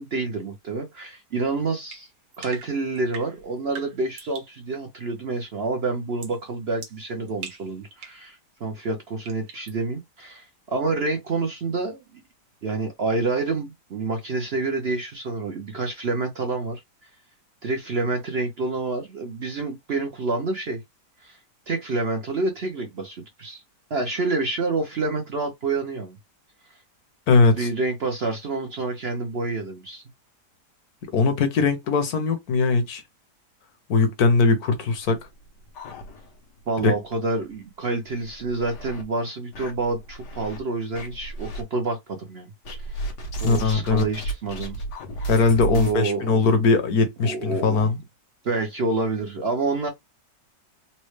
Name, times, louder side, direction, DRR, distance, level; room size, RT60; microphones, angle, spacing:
voice 1, 0.0-2.1 2.4-12.0 12.6-16.8 17.6-20.8 21.2-21.4 21.7-23.6 23.9-26.2 27.4-30.0 36.7-42.5 42.8-43.1 43.4-44.8 45.2-45.3 45.6-46.5 47.2-47.9 48.4-49.9, right 3 dB, 50° right, 0.8 m, -28 dB
sound 1, 1.9-4.6 6.2-6.4 6.8-8.3 9.2-9.8, right 6 dB, 70° right, 1.5 m, -42 dB
voice 2, 27.3-27.7 31.1-33.0 33.9-35.2 36.8-36.9 43.4-44.1 45.3-48.0, left 4 dB, 70° left, 1.3 m, -20 dB
sound 2, 35.1-36.6 37.0-37.1 37.4-37.5 38.1-39.0 39.5-40.6 40.9-41.6 42.7-46.0, right 2 dB, 90° left, 1.7 m, -33 dB
4.2 x 2.2 x 3.2 m
omnidirectional pair, 1.8 m